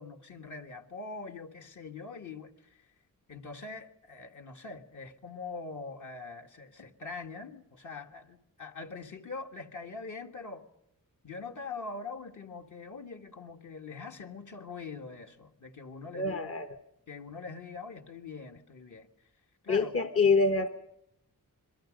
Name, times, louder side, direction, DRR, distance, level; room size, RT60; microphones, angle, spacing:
voice 1, 0.0-2.9 3.3-10.7 11.2-16.6 17.1-19.1 19.6-19.9, left 4 dB, 60° left, 1.8 m, -43 dB
voice 2, 16.2-16.8 19.7-20.7, left 4 dB, 40° left, 1.1 m, -26 dB
27.5 x 22.5 x 5.3 m
wide cardioid pair, 115°, 34 cm